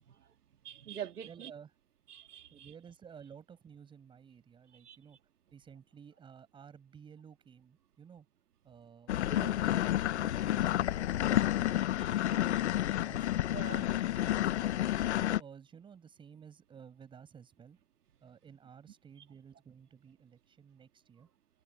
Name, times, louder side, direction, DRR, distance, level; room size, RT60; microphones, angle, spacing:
voice 1, 0.6-1.5 2.1-2.7 4.8-5.0 9.3-9.5 12.0-12.1 13.5-13.9, right 9 dB, 85° right, 2.1 m, -44 dB
voice 2, 1.2-1.7 2.5-5.2 5.5-8.3 8.6-9.7 10.1-12.5 12.9-13.5 14.3-17.8 18.2-21.3, right 7 dB, 10° right, 6.8 m, -54 dB
sound 1, 9.1-15.4, left 13 dB, 50° left, 0.6 m, -30 dB
hypercardioid pair, 165°, 45 cm